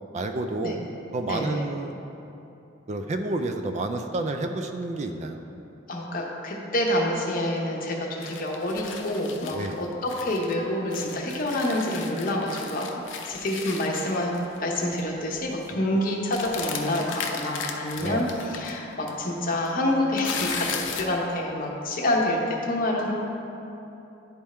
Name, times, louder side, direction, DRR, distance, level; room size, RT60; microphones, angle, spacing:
voice 1, 0.1-0.8 1.1-2.0 2.9-5.4 9.5-9.8 15.7-16.0 18.0-18.2, right 2 dB, 35° right, 6 dB, 0.3 m, -30 dB
voice 2, 1.3-1.6 5.9-12.9 13.2-14.3 14.6-23.1, left 1 dB, 45° left, -1 dB, 0.9 m, -27 dB
sound 1, 8.2-10.5 10.9-14.6 14.8-15.1 15.4-15.7 16.3-18.7 19.1-19.2 19.5-21.2, left 6 dB, 70° left, 0.6 m, -36 dB
10.5 x 3.6 x 4.3 m, 3.0 s
head